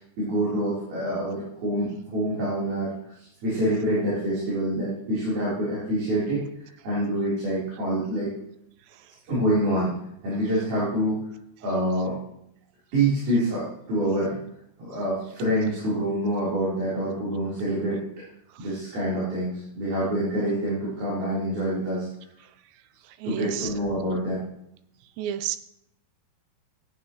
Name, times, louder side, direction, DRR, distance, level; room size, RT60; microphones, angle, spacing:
voice 1, 0.0-2.9 3.2-8.3 9.3-9.9 10.2-11.2 11.6-12.2 12.9-14.4 14.8-18.0 18.6-22.1 23.2-24.4, right 1 dB, 60° right, -9 dB, 5.6 m, -26 dB
voice 2, 23.2-23.7 25.2-25.6, right 11 dB, 90° right, 11 dB, 2.9 m, -30 dB
14.5 x 9.2 x 3.1 m, 0.74 s
omnidirectional pair, 5.0 m